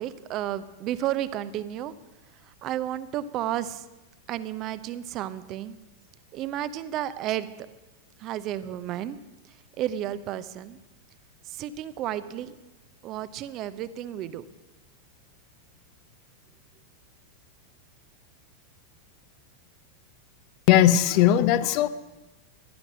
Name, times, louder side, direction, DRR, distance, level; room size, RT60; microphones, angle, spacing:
voice 1, 0.0-1.9 2.6-3.8 4.3-5.8 6.3-7.5 8.2-9.2 9.8-10.8 11.5-12.5 13.0-14.5, right 12 dB, 35° right, 14 dB, 0.7 m, -32 dB
voice 2, 20.7-21.9, left 11 dB, 45° left, 14 dB, 0.8 m, -18 dB
15.5 x 11.5 x 6.2 m, 1.0 s
figure-of-eight pair, 90°, 0 cm